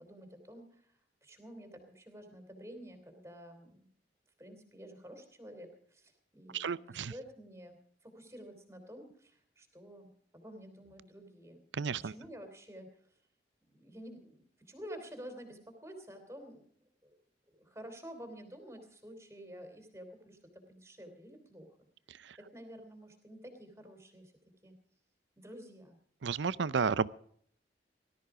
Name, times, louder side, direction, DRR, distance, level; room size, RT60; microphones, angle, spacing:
voice 1, 0.0-3.9 4.4-7.8 8.0-11.6 11.9-13.1 13.6-16.6 17.0-17.2 17.5-21.7 22.4-24.3 24.6-24.8 25.4-26.0, equal, 15° right, 6 dB, 3.2 m, -50 dB
voice 2, 6.5-7.1 11.8-12.1 26.2-27.1, right 5 dB, 85° right, 19 dB, 0.6 m, -32 dB
18.0 x 13.0 x 4.9 m, 0.62 s
head